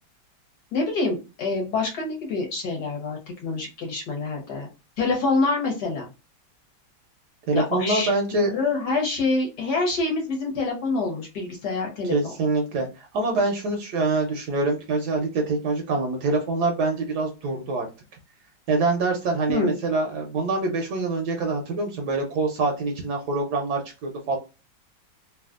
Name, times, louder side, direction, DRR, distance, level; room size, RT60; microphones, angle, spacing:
voice 1, 0.7-4.7 5.0-6.1 7.5-12.3 19.5-19.8, left 3 dB, 60° left, 0 dB, 1.4 m, -26 dB
voice 2, 7.5-8.6 12.0-17.9 18.7-24.4, right 3 dB, 70° right, 2 dB, 1.1 m, -25 dB
3.3 x 2.3 x 2.4 m, 0.29 s
omnidirectional pair, 2.1 m